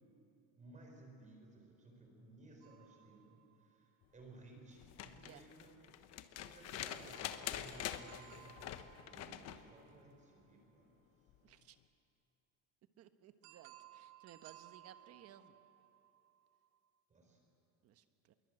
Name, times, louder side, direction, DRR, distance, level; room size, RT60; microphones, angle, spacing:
voice 1, 0.6-3.9 4.1-5.7 6.1-8.7 9.1-10.9 17.1-17.4, right 2 dB, 20° right, 1 dB, 4.6 m, -58 dB
sound 1, 2.6-4.3 6.9-10.8 13.4-16.9, right 14 dB, 85° right, 1.7 m, -62 dB
sound 2, 4.8-9.7 11.3-11.4, left 11 dB, 45° left, 1.3 m, -45 dB
voice 2, 5.2-5.5 11.4-11.8 13.0-15.6 17.8-18.3, right 11 dB, 45° right, 9 dB, 1.4 m, -59 dB
26.0 x 23.0 x 8.9 m, 2.8 s
cardioid pair, 150°, 34 cm